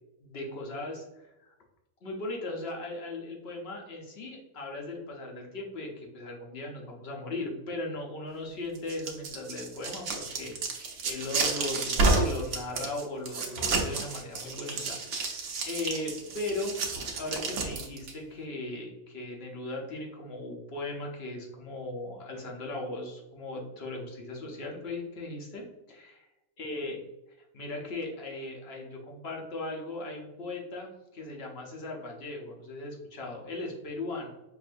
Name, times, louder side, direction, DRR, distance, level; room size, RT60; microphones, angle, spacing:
voice 1, 0.2-1.5 2.0-16.7 17.1-26.3 26.6-27.0 27.5-34.3, left 2 dB, 50° left, 0 dB, 0.9 m, -38 dB
sound 1, 8.8-18.1, right 3 dB, 85° right, 1.3 m, -30 dB
5.9 x 2.6 x 2.5 m, 0.96 s
omnidirectional pair, 1.5 m